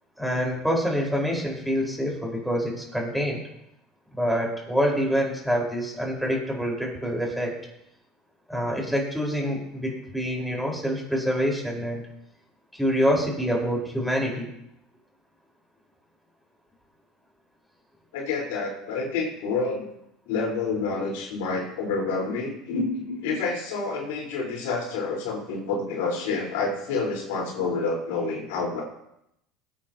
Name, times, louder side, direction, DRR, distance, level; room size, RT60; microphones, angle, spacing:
voice 1, 0.2-3.4 4.1-7.5 8.5-12.0 12.8-14.5, equal, ahead, -3 dB, 4.9 m, -26 dB
voice 2, 18.1-19.9 20.2-28.8, left 4 dB, 80° left, -2 dB, 4.6 m, -28 dB
21.0 x 9.3 x 3.0 m, 0.81 s
supercardioid pair, 100°, 0 cm